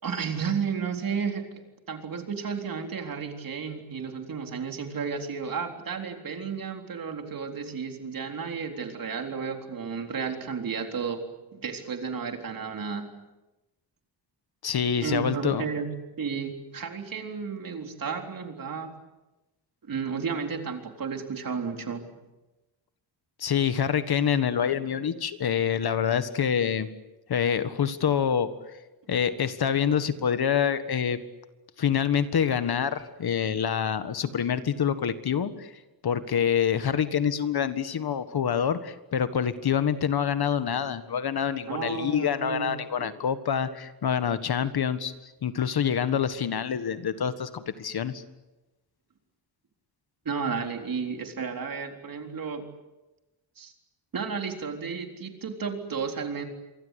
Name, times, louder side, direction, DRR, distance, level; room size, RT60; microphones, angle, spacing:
voice 1, 0.0-11.2 11.5-13.0 15.0-15.9 16.2-18.9 19.8-22.1 41.7-42.7 43.0-43.1 50.3-52.7 53.6-53.7 54.1-56.5, right 6 dB, 50° right, 4 dB, 3.9 m, -32 dB
voice 2, 14.6-15.6 23.4-26.9 27.3-28.5 29.1-31.2 31.8-35.7 36.0-45.1 45.4-48.2, left 8 dB, 55° left, 11 dB, 1.7 m, -26 dB
27.5 x 24.0 x 8.3 m, 1.1 s
wide cardioid pair, 145°, 45 cm